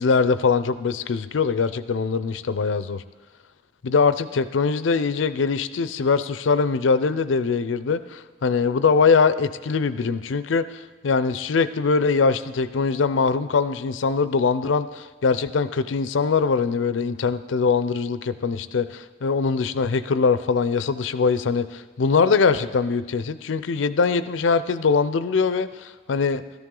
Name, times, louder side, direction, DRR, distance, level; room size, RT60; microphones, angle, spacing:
voice 1, 0.0-3.0 3.8-26.4, left 5 dB, 85° left, 14 dB, 0.5 m, -22 dB
14.0 x 13.0 x 3.8 m, 1.4 s
head